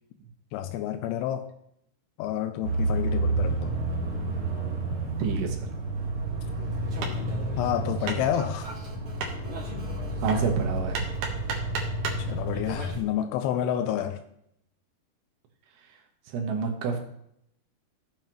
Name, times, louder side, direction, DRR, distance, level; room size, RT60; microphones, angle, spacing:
voice 1, 0.5-1.5 2.2-3.8 7.6-8.7 12.2-14.2, left 10 dB, 90° left, 7 dB, 2.7 m, -29 dB
sound 1, 2.6-13.0, right 2 dB, 45° right, 1.9 m, -30 dB
voice 2, 5.2-5.7 9.7-9.9 10.2-11.0 16.3-17.0, right 5 dB, 85° right, 2 dB, 3.6 m, -28 dB
Hammer, 7.0-12.3, right 4 dB, 60° right, 2.6 m, -37 dB
14.5 x 7.5 x 3.1 m, 0.74 s
omnidirectional pair, 4.7 m